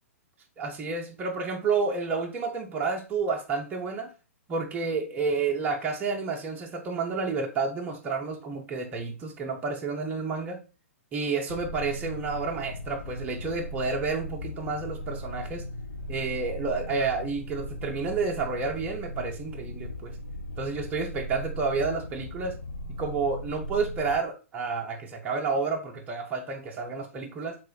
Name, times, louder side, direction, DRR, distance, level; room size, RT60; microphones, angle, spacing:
voice 1, 0.6-4.1 4.5-10.6 11.1-15.6 16.1-20.1 20.6-22.6 22.9-27.6, right 4 dB, 20° right, 1 dB, 0.5 m, -30 dB
sound 1, 11.5-24.2, equal, 80° left, 0.7 m, -38 dB
4.8 x 3.4 x 2.3 m, 0.33 s
figure-of-eight pair, 115°, 7 cm